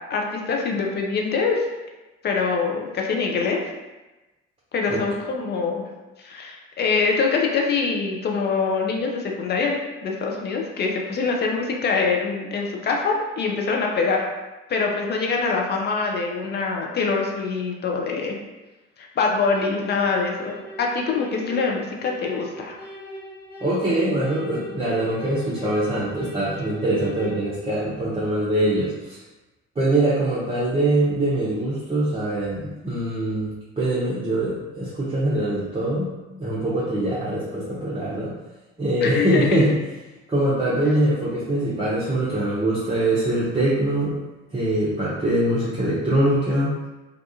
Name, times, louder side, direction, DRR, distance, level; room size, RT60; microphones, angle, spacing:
voice 1, 0.1-1.6 2.2-3.6 4.7-5.8 6.2-9.8 10.0-14.3 14.7-18.4 19.0-22.8 39.0-39.6, left 4 dB, 30° left, 0 dB, 0.4 m, -24 dB
sound 1, 19.5-27.4, right 1 dB, 50° left, 1.4 m, -41 dB
voice 2, 23.6-29.2 29.8-38.3 38.8-39.7 40.3-44.1 44.5-46.7, right 1 dB, 15° right, -10 dB, 0.6 m, -23 dB
2.3 x 2.3 x 2.7 m, 1.1 s
figure-of-eight pair, 50°, 38 cm